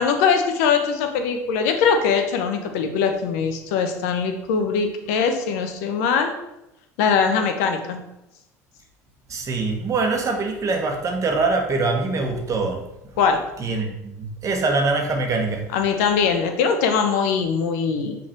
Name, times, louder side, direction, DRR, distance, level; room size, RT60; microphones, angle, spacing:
voice 1, 0.0-6.3 7.0-8.0 13.2-13.4 15.7-18.2, left 6 dB, 70° left, 6 dB, 0.9 m, -21 dB
voice 2, 9.3-12.8 13.6-15.6, right 3 dB, 40° right, 2 dB, 1.3 m, -23 dB
6.2 x 3.9 x 4.5 m, 0.88 s
hypercardioid pair, 70°, 9 cm